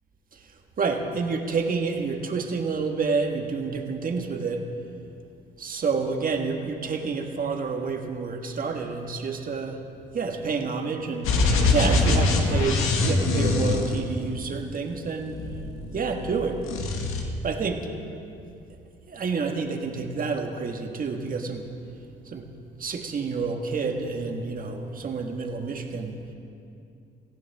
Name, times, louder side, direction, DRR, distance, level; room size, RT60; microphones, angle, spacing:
voice 1, 0.8-4.6 5.6-9.8 10.1-15.4 15.9-16.6 17.2-17.8 19.1-21.7 22.2-22.5 22.8-26.2, right 4 dB, 40° right, 3 dB, 1.6 m, -29 dB
sound 1, 11.2-14.5 15.3-16.3 16.6-17.2, left 2 dB, 85° left, 1.8 m, -23 dB
18.5 x 15.5 x 3.6 m, 2.5 s
cardioid pair, 100°, 21 cm